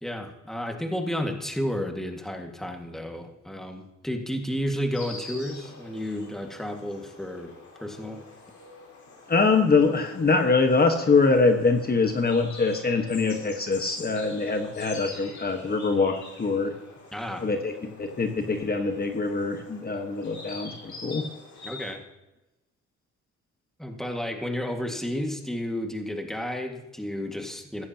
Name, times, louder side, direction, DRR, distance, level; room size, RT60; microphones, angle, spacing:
voice 1, 0.0-7.5 7.8-8.2 17.1-17.5 21.6-22.0 23.8-27.8, equal, ahead, 3 dB, 1.9 m, -32 dB
Insect, 4.9-21.9, left 3 dB, 65° left, 4.6 m, -45 dB
voice 2, 9.3-16.7 17.4-21.2, left 4 dB, 30° left, 4 dB, 1.4 m, -24 dB
16.0 x 13.5 x 2.9 m, 1.0 s
cardioid pair, 90°, 30 cm